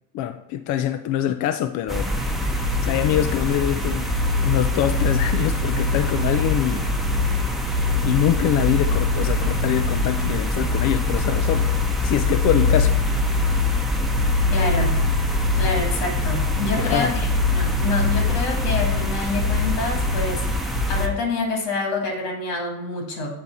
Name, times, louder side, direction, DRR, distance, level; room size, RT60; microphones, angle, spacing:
voice 1, 0.1-2.1 2.8-4.1 4.4-6.9 8.0-11.7 12.0-12.9 16.8-17.1, left 11 dB, 45° left, 9 dB, 0.4 m, -24 dB
sound 1, 1.9-21.1, left 2 dB, ahead, 0.8 m, -22 dB
voice 2, 14.5-14.9 15.6-20.4 20.9-23.4, left 2 dB, 70° left, 1 dB, 2.1 m, -27 dB
8.7 x 3.5 x 4.0 m, 0.88 s
hypercardioid pair, 90°, 43 cm